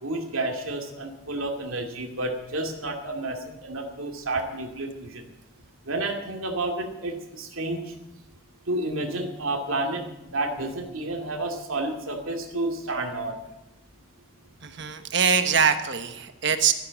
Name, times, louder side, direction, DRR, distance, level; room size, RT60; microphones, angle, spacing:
voice 1, 0.0-5.2 5.9-7.9 8.7-13.4, right 2 dB, 75° right, 1 dB, 2.4 m, -30 dB
voice 2, 14.6-16.7, right 6 dB, 55° right, 8 dB, 1.3 m, -23 dB
13.0 x 12.5 x 7.6 m, 0.91 s
head